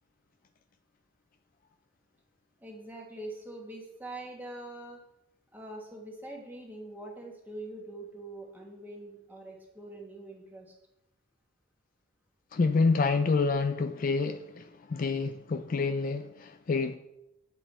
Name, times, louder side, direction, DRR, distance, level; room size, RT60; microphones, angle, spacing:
voice 1, 2.6-5.0 5.5-10.7, right 1 dB, 10° right, 1.5 m, -43 dB
voice 2, 12.5-17.0, left 4 dB, 40° left, 0.4 m, -28 dB
8.8 x 7.2 x 4.3 m
head